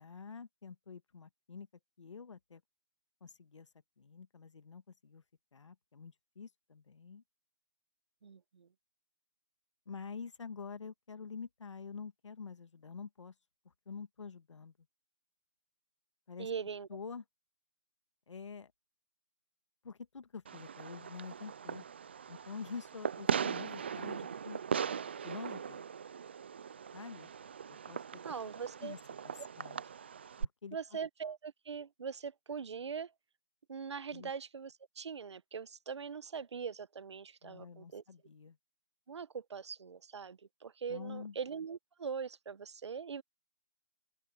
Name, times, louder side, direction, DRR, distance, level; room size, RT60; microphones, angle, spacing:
voice 1, 0.0-1.7 2.0-2.6 3.2-3.7 4.0-5.2 5.5-7.2 9.9-13.3 13.9-14.7 16.3-16.5 16.9-17.2 18.3-18.7 19.8-21.9 22.3-24.6 25.2-25.8 26.9-27.3 27.7-28.2 28.8-29.0 29.2-29.8 30.4-30.8 34.1-34.3 37.4-38.6 40.9-41.4, left 5 dB, 85° left, 1.9 m, -47 dB
voice 2, 8.2-8.7 16.4-16.9 28.2-28.9 30.7-33.1 33.7-38.0 39.1-43.2, right 6 dB, 70° right, 1.0 m, -42 dB
Fireworks, 20.5-30.5, right 7 dB, 25° right, 0.3 m, -39 dB
open air
hypercardioid pair, 170°, 15 cm